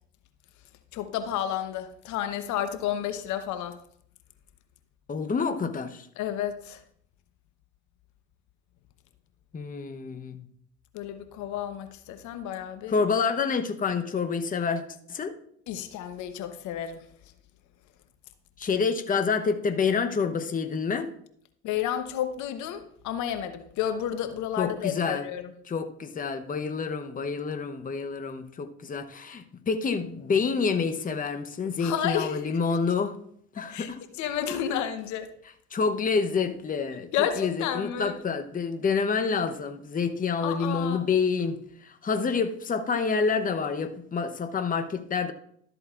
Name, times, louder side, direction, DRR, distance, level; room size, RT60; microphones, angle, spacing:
voice 1, 0.9-3.8 6.2-6.8 10.9-13.0 15.7-17.0 21.6-25.4 31.8-32.6 33.6-33.9 34.2-35.3 37.1-38.2 40.4-41.1, left 10 dB, 60° left, 9 dB, 1.0 m, -31 dB
voice 2, 5.1-6.1 9.5-10.5 12.9-14.8 15.1-15.3 18.6-21.1 24.6-25.3 25.7-33.2 33.5-34.0 35.7-45.3, left 5 dB, 25° left, 7 dB, 0.9 m, -28 dB
12.5 x 7.9 x 2.5 m, 0.65 s
hypercardioid pair, 65°, 32 cm